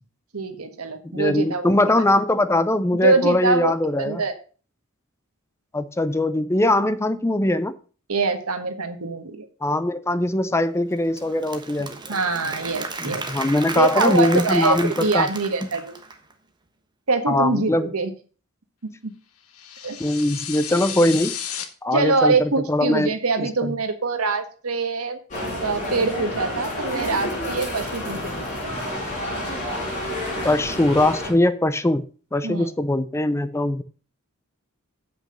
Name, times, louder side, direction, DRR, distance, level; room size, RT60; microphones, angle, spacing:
voice 1, 0.3-1.7 3.0-3.7 4.0-4.3 8.1-9.5 12.1-13.2 13.7-15.9 17.1-18.1 19.0-19.1 19.8-20.0 21.9-25.2 25.6-28.3 28.6-28.7 32.4-32.7, right 3 dB, 85° right, 7 dB, 1.5 m, -24 dB
voice 2, 1.0-4.2 5.7-7.7 9.6-11.9 13.0-15.3 15.6-15.7 17.3-17.9 20.0-21.3 21.8-23.7 30.4-32.0 32.3-33.8, left 1 dB, 10° left, 13 dB, 0.5 m, -21 dB
Applause / Crowd, 10.9-16.3, right 3 dB, 20° right, 1.2 m, -34 dB
sound 1, 19.5-21.6, left 9 dB, 80° left, 1.3 m, -33 dB
sound 2, 25.3-31.3, left 1 dB, 35° left, 5.2 m, -29 dB
7.8 x 6.0 x 6.6 m, 0.39 s
head